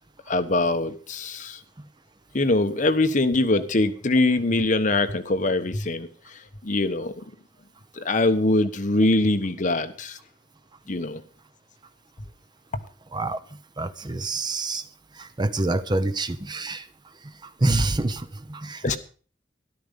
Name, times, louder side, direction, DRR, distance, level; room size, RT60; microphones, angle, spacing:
voice 1, 0.3-1.6 2.3-6.1 6.6-7.1 8.0-10.2 10.9-11.2 18.8-19.0, left 2 dB, 45° left, 9 dB, 1.1 m, -23 dB
voice 2, 13.8-14.9 15.2-16.9 17.4-19.0, right 2 dB, 25° right, 13 dB, 0.7 m, -27 dB
13.0 x 12.0 x 5.2 m, 0.40 s
head